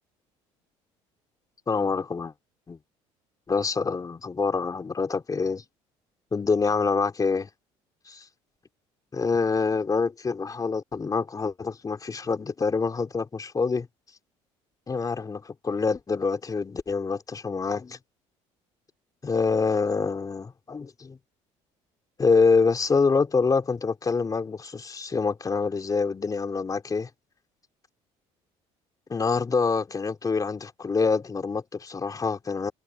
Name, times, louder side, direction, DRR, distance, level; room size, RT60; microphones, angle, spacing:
voice 1, 1.7-2.3 2.7-2.8 3.5-5.6 6.3-7.5 8.1-8.2 9.1-13.9 14.9-18.0 19.2-21.2 22.2-27.1 29.1-32.7, left 4 dB, 25° left, 3.4 m, -26 dB
supercardioid pair, 85°, 13 cm